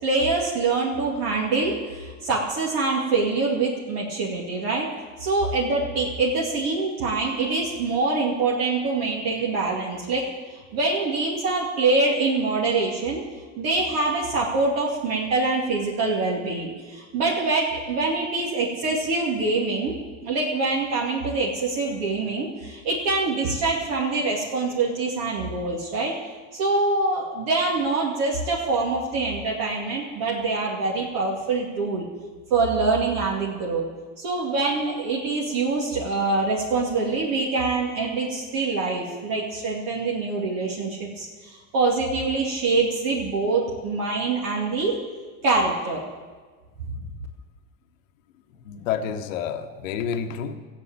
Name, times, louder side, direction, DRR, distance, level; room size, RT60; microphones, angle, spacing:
voice 1, 0.0-4.9 5.2-13.2 13.5-20.0 20.2-26.1 26.5-32.0 32.5-33.8 34.2-45.0 45.4-46.0, right 3 dB, 60° right, -4 dB, 2.5 m, -25 dB
voice 2, 48.6-50.5, left 8 dB, 85° left, 8 dB, 1.1 m, -29 dB
14.5 x 8.2 x 8.7 m, 1.4 s
supercardioid pair, 105°, 38 cm